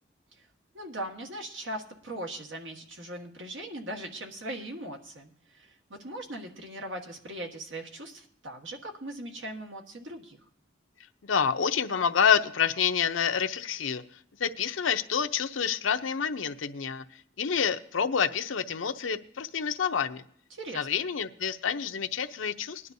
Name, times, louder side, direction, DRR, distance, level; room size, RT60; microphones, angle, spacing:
voice 1, 0.7-10.5 20.5-21.0, right 1 dB, 80° right, 2 dB, 1.6 m, -40 dB
voice 2, 11.2-14.0 14.4-17.0 17.4-20.2 20.7-22.9, left 7 dB, 90° left, 9 dB, 0.6 m, -28 dB
20.0 x 11.0 x 2.7 m, 0.63 s
head